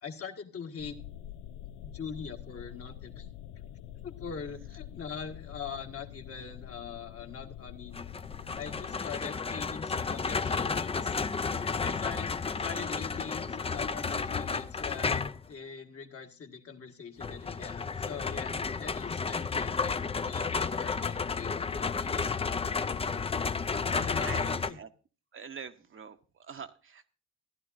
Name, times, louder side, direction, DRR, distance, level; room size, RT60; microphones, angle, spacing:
voice 1, 0.0-1.0 1.8-3.3 4.0-8.1 8.6-11.2 11.4-22.5 22.9-23.1 23.7-24.8, left 6 dB, 50° left, 4 dB, 1.6 m, -43 dB
sound 1, 0.8-9.0, left 11 dB, 90° left, 0.5 m, -46 dB
sound 2, 7.9-15.5 17.2-24.7, left 5 dB, 20° left, 0.5 m, -32 dB
voice 2, 23.9-24.9 25.3-27.1, right 6 dB, 45° right, 8 dB, 0.9 m, -44 dB
16.0 x 11.0 x 2.6 m, 0.34 s
cardioid pair, 90°, 30 cm